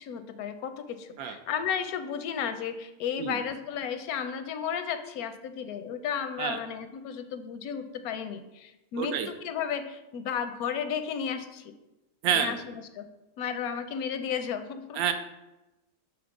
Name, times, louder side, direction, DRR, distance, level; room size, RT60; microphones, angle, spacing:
voice 1, 0.0-11.7 12.3-13.1 13.4-15.0, left 7 dB, 85° left, 10 dB, 1.1 m, -33 dB
voice 2, 9.0-9.3 12.2-12.5 15.0-15.1, right 8 dB, 80° right, 8 dB, 1.1 m, -27 dB
5.1 x 3.8 x 5.8 m, 1.0 s
omnidirectional pair, 1.5 m